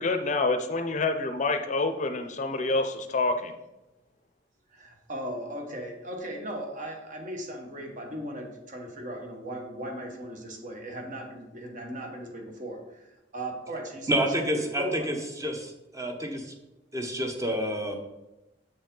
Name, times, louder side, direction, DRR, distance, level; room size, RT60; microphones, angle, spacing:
voice 1, 0.0-3.5, left 3 dB, 45° left, 7 dB, 0.6 m, -27 dB
voice 2, 1.0-1.3 4.7-15.2, right 1 dB, 45° right, 2 dB, 1.3 m, -38 dB
voice 3, 14.1-16.5 16.9-18.0, equal, 20° right, 3 dB, 1.0 m, -29 dB
7.7 x 5.2 x 3.8 m, 0.97 s
head